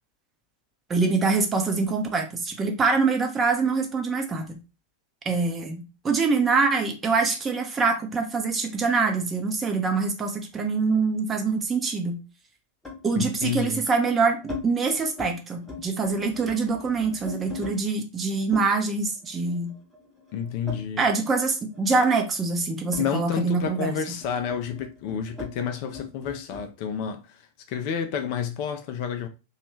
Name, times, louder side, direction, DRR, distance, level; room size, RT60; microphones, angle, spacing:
voice 1, 0.9-4.6 5.3-12.2 13.0-14.4 14.6-19.7 21.0-24.0, right 4 dB, 20° right, 0.7 m, -24 dB
sound 1, 10.0-11.6 12.8-13.1 13.8-14.6 15.0-15.3 15.6-17.8 18.5-21.4 21.7-26.7, left 4 dB, 10° left, 0.9 m, -41 dB
voice 2, 13.2-13.8 20.3-21.1 23.0-29.3, left 7 dB, 45° left, 0.4 m, -30 dB
3.0 x 2.3 x 3.0 m
figure-of-eight pair, 90°, 0 cm